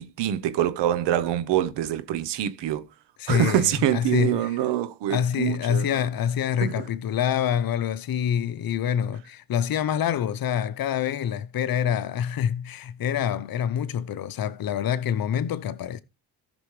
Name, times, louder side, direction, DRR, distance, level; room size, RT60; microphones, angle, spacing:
voice 1, 0.0-2.9 3.3-6.0 6.6-6.9, right 11 dB, 75° right, 1.0 m, -25 dB
voice 2, 3.2-4.4 5.1-16.0, left 9 dB, 55° left, 0.8 m, -26 dB
14.0 x 6.1 x 3.3 m
supercardioid pair, 70°, 43 cm